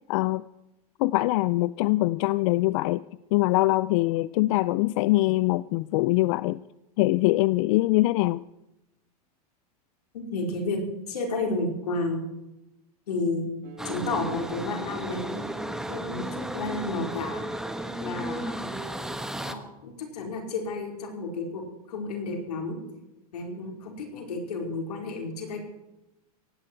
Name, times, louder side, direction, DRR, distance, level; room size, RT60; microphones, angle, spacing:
voice 1, 0.1-0.4 1.0-3.0 3.3-6.6 7.0-8.4, left 19 dB, 55° left, 18 dB, 0.5 m, -23 dB
voice 2, 10.1-10.8 11.1-12.2 13.1-13.5 13.8-15.4 15.9-17.5 18.0-18.7 19.4-21.6 21.9-22.8 23.3-25.6, left 3 dB, 85° left, 1 dB, 4.5 m, -31 dB
sound 1, 13.6-18.6, right 6 dB, 45° right, 3.4 m, -45 dB
sound 2, 13.8-19.5, right 1 dB, 5° right, 1.2 m, -34 dB
18.0 x 16.0 x 4.6 m, 0.93 s
hypercardioid pair, 115°, 20 cm